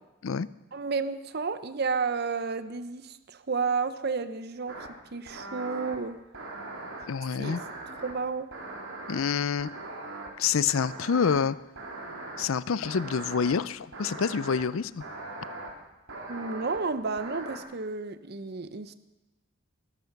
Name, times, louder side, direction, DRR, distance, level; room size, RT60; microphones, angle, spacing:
voice 1, 0.7-6.2 7.4-7.6 7.9-8.5 16.3-18.9, right 4 dB, 50° right, 12 dB, 0.7 m, -31 dB
sound 1, 4.7-4.9 5.3-6.0 6.3-7.0 7.4-8.1 8.5-9.2 9.6-10.3 10.7-11.4 11.8-12.5 12.8-13.5 13.9-14.6 15.0-15.7 16.1-16.8 17.2-17.6, right 2 dB, 65° right, 3.1 m, -40 dB
voice 2, 7.1-7.6 9.1-9.7 10.4-11.6 12.4-15.0, left 6 dB, 75° left, 19 dB, 0.5 m, -27 dB
20.0 x 12.0 x 5.9 m, 1.0 s
head